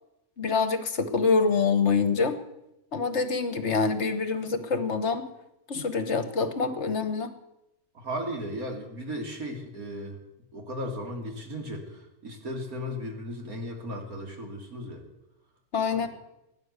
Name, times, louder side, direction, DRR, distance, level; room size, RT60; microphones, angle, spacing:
voice 1, 0.4-2.4 2.9-5.3 5.7-7.3 15.7-16.1, left 4 dB, 50° left, 11 dB, 1.3 m, -26 dB
voice 2, 7.9-10.2 10.5-15.0 15.9-16.1, equal, 70° right, 2 dB, 3.2 m, -36 dB
17.5 x 10.0 x 8.2 m, 0.89 s
omnidirectional pair, 1.6 m